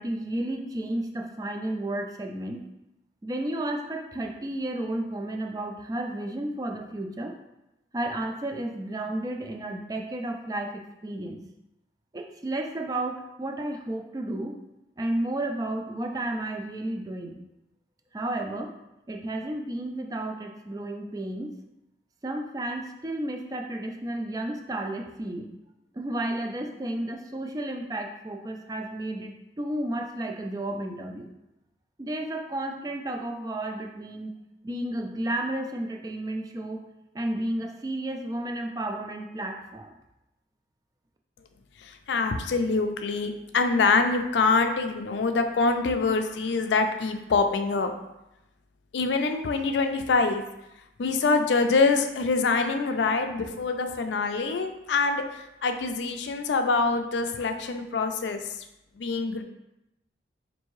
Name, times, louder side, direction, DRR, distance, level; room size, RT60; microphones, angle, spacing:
voice 1, 0.0-2.6 3.2-7.3 7.9-11.4 12.1-14.5 15.0-17.3 18.1-18.7 19.1-21.6 22.2-25.5 25.9-31.3 32.0-34.4 34.6-36.8 37.1-40.0, right 1 dB, 20° right, 3 dB, 0.3 m, -32 dB
voice 2, 41.8-47.9 48.9-50.4 51.0-55.2 55.6-58.4 59.0-59.4, left 4 dB, 85° left, 6 dB, 0.4 m, -25 dB
4.5 x 2.6 x 3.1 m, 0.90 s
head